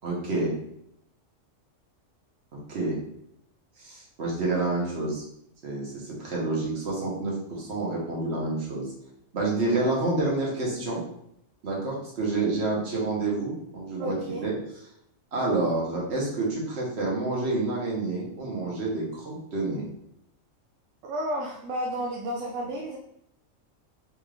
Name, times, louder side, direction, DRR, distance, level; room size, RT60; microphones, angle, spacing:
voice 1, 0.0-0.5 2.7-3.0 3.8-5.2 5.6-8.9 9.3-11.0 11.6-14.1 14.4-14.5 15.3-19.9, right 2 dB, 55° right, -3 dB, 1.4 m, -28 dB
voice 2, 14.0-14.4 21.0-23.0, right 1 dB, 75° right, 0 dB, 0.9 m, -32 dB
4.3 x 3.3 x 2.4 m, 0.75 s
omnidirectional pair, 1.3 m